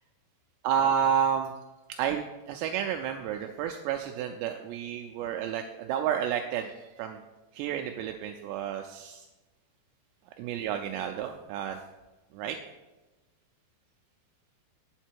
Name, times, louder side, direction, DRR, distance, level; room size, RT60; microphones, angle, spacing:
voice 1, 0.6-1.5 2.0-7.2 7.5-9.3 10.4-11.8 12.3-12.6, right 8 dB, 85° right, 4 dB, 2.7 m, -30 dB
9.0 x 7.5 x 4.5 m, 1.1 s
omnidirectional pair, 5.2 m